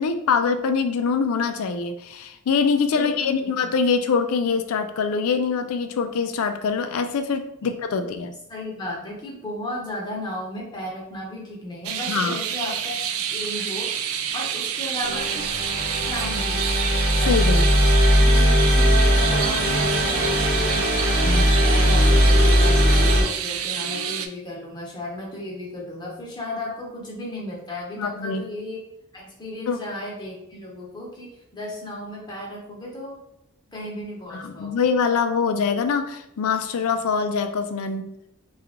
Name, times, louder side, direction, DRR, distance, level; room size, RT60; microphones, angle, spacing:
voice 1, 0.0-8.3 12.1-12.4 17.3-17.6 21.2-21.4 28.0-28.4 29.7-29.8 34.3-38.1, left 5 dB, 85° left, 8 dB, 0.4 m, -24 dB
voice 2, 2.9-3.3 3.6-3.7 7.6-8.1 8.5-13.0 13.3-15.5 16.1-16.7 17.1-17.4 18.1-28.8 29.1-33.2 33.7-34.9, left 1 dB, 20° left, -3 dB, 0.8 m, -35 dB
sound 1, 11.8-24.3, right 9 dB, 75° right, 0.3 m, -28 dB
sound 2, 15.0-23.2, equal, 50° right, 0.9 m, -19 dB
2.9 x 2.4 x 3.6 m, 0.79 s
head